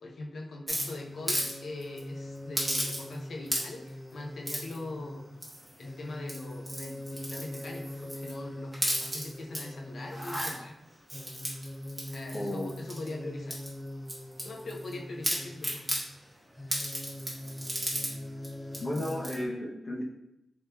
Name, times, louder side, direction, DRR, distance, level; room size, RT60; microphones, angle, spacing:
voice 1, 0.0-5.2 5.8-10.7 11.2-11.4 12.1-13.6 14.4-15.9, left 2 dB, 70° left, 1 dB, 0.6 m, -42 dB
sound 1, 0.7-19.5, left 1 dB, 10° left, 0.4 m, -43 dB
sound 2, 0.7-1.5 1.8-2.0 2.5-3.2 3.4-3.9 4.4-4.8 5.4-5.8 6.2-8.3 8.7-9.6 10.0-10.5 11.1-13.1 13.5-14.9 15.2-16.0 16.7-18.1 18.4-18.5 18.7-19.4, equal, 10° right, 1.2 m, -34 dB
voice 2, 12.3-12.7 18.8-20.0, left 1 dB, 45° left, -3 dB, 0.9 m, -33 dB
3.6 x 3.0 x 2.8 m, 0.86 s
cardioid pair, 80°, 0 cm